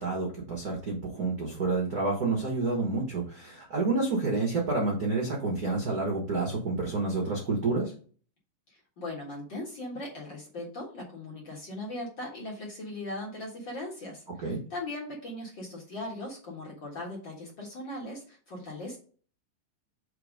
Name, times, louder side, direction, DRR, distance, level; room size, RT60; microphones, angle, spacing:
voice 1, 0.0-7.9 14.4-14.6, right 3 dB, 70° right, -1 dB, 0.8 m, -29 dB
voice 2, 8.7-14.2 14.7-19.0, left 1 dB, 45° left, -3 dB, 1.8 m, -39 dB
4.9 x 4.6 x 5.0 m, 0.42 s
omnidirectional pair, 4.1 m